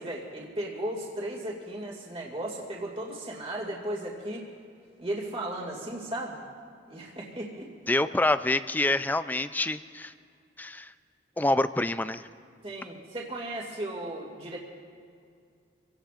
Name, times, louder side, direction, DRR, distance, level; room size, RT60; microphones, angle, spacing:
voice 1, 0.0-4.4 5.0-6.4 6.9-7.7 12.6-14.6, right 1 dB, 30° right, -2 dB, 2.3 m, -35 dB
voice 2, 7.9-10.1 10.6-10.9 11.4-12.2, left 2 dB, 10° left, 12 dB, 0.4 m, -26 dB
25.5 x 17.5 x 2.5 m, 2.3 s
head